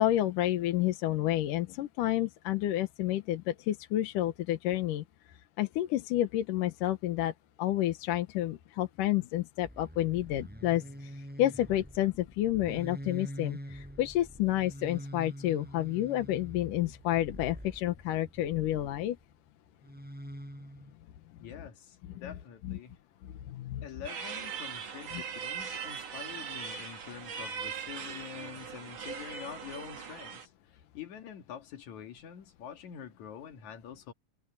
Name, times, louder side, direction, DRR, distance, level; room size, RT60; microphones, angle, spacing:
voice 1, 0.0-5.0 5.6-7.3 7.6-19.2 22.6-22.8 23.2-23.9, left 13 dB, 80° left, 2.6 m, -30 dB
sound 1, 9.6-19.2 19.8-20.9, equal, 5° right, 5.6 m, -45 dB
voice 2, 21.4-23.0 23.8-34.1, left 8 dB, 65° left, 3.1 m, -46 dB
sound 2, 24.0-30.5, right 6 dB, 50° right, 3.2 m, -40 dB
omnidirectional pair, 3.8 m